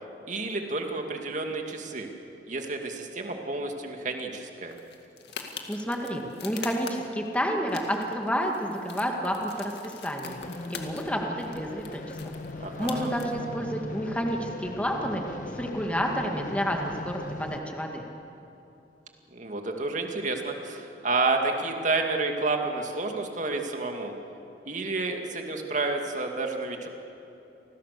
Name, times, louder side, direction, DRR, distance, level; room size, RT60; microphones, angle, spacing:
voice 1, 0.3-2.1 2.5-4.8 12.6-13.1 19.3-24.1 24.7-26.9, right 3 dB, 45° right, 3 dB, 2.4 m, -30 dB
sound 1, 4.7-7.3 7.7-11.1 11.4-13.2, left 6 dB, 70° left, 2.2 m, -43 dB
voice 2, 5.7-10.4 10.7-18.0, equal, 10° left, 1 dB, 2.0 m, -30 dB
sound 2, 10.2-17.6, left 1 dB, 50° left, 1.3 m, -39 dB
29.5 x 20.5 x 6.7 m, 3.0 s
head